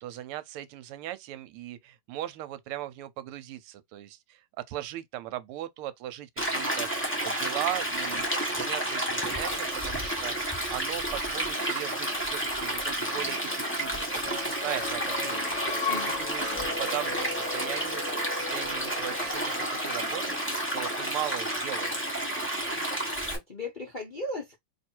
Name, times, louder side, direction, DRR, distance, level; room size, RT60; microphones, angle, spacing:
voice 1, 0.0-8.3 8.5-10.3 10.7-15.6 15.9-18.0 18.3-20.4 20.7-22.1, right 13 dB, 80° right, 1.5 m, -38 dB
Stream, 6.4-23.4, right 1 dB, 10° left, 0.5 m, -31 dB
sound 1, 12.9-22.4, left 4 dB, 55° left, 1.4 m, -38 dB
voice 2, 15.8-16.3 23.3-24.6, left 2 dB, 80° left, 0.4 m, -37 dB
3.2 x 2.5 x 4.4 m
omnidirectional pair, 2.4 m